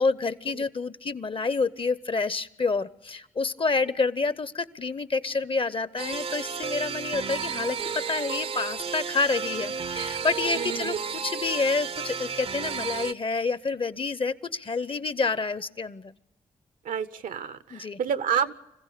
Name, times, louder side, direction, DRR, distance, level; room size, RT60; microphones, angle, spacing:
voice 1, 0.0-11.0 11.2-16.1 17.7-18.0, left 4 dB, 40° left, 17 dB, 0.8 m, -28 dB
sound 1, 6.0-13.1, right 6 dB, 45° right, 0.6 m, -32 dB
voice 2, 10.5-11.0 16.8-18.5, right 7 dB, 70° right, 14 dB, 0.8 m, -29 dB
25.5 x 15.5 x 6.8 m, 0.95 s
supercardioid pair, 45°, 14 cm